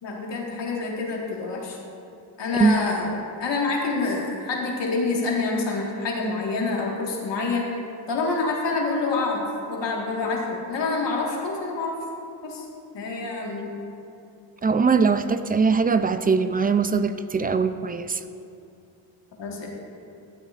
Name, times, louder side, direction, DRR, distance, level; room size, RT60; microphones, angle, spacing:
voice 1, 0.0-1.8 2.4-3.1 3.4-7.7 8.1-9.4 9.7-12.0 12.4-12.6 12.9-13.7 19.4-19.7, left 3 dB, 70° left, -2 dB, 1.8 m, -27 dB
voice 2, 14.6-18.2, right 5 dB, 20° right, 11 dB, 0.3 m, -21 dB
12.5 x 7.6 x 2.5 m, 2.6 s
cardioid pair, 60°, 44 cm